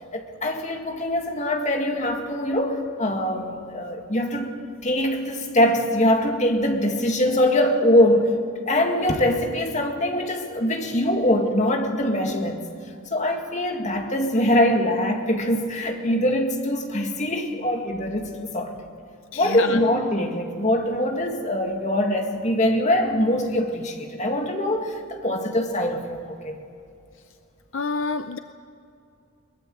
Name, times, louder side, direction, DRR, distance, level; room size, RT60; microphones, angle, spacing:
voice 1, 0.1-8.4 8.7-12.6 13.1-18.7 19.3-26.6, left 1 dB, 30° left, 3 dB, 2.0 m, -23 dB
voice 2, 19.3-19.8 27.7-28.4, left 4 dB, 60° left, 10 dB, 0.6 m, -27 dB
22.5 x 20.0 x 7.8 m, 2.5 s
head